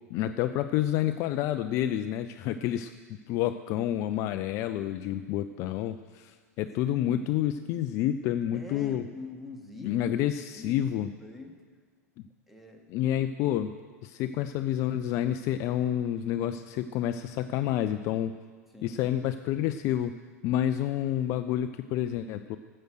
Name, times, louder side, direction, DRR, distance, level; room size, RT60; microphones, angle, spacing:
voice 1, 0.1-9.0 9.8-11.1 12.2-12.3 12.9-13.7 14.0-18.3 18.8-20.1 20.4-22.6, left 11 dB, 35° left, 9 dB, 0.4 m, -29 dB
voice 2, 6.9-7.4 8.5-10.1 10.5-10.8 11.2-11.6 12.5-12.8 18.7-19.0, left 2 dB, ahead, 2 dB, 1.7 m, -44 dB
13.0 x 7.9 x 6.4 m, 1.5 s
figure-of-eight pair, 95°, 9 cm